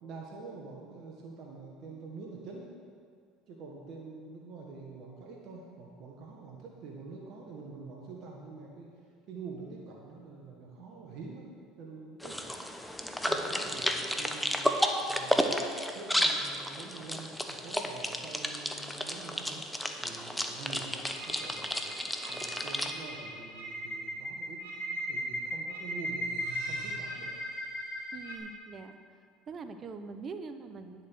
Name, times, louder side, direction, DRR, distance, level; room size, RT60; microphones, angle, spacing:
voice 1, 0.0-2.7 3.5-9.0 9.3-11.5 11.8-12.4 13.3-15.6 15.9-19.6 20.0-21.9 22.3-26.3 26.6-27.4, right 4 dB, 60° right, -1 dB, 1.6 m, -46 dB
sound 1, 12.2-22.9, equal, 5° left, 1.0 m, -32 dB
sound 2, 21.0-28.4, equal, 75° right, 2.2 m, -38 dB
voice 2, 28.1-29.2 29.5-31.1, right 4 dB, 40° right, 9 dB, 0.9 m, -43 dB
10.0 x 7.6 x 6.4 m, 2.1 s
hypercardioid pair, 75°, 0 cm